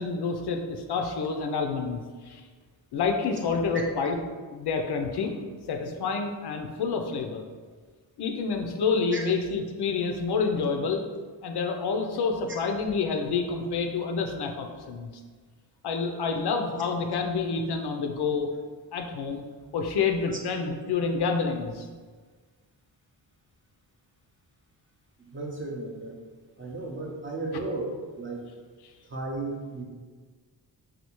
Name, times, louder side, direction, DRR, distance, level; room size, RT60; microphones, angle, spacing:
voice 1, 0.0-2.4 2.9-4.2 4.5-5.3 5.7-7.4 8.2-11.0 11.4-15.1 15.8-18.5 18.9-19.5 19.7-21.9, left 4 dB, 60° left, 4 dB, 0.5 m, -28 dB
voice 2, 25.2-26.3 26.6-28.4 29.0-29.8, right 2 dB, 25° right, -1 dB, 0.6 m, -34 dB
3.4 x 2.3 x 2.9 m, 1.5 s
cardioid pair, 55°, 46 cm